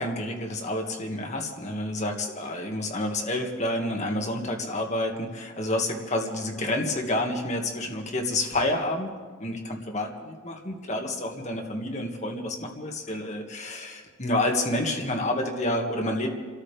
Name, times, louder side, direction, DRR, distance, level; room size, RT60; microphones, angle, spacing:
voice 1, 0.0-9.1 9.4-16.3, left 1 dB, 35° left, 2 dB, 2.0 m, -29 dB
29.5 x 13.5 x 3.5 m, 1.5 s
head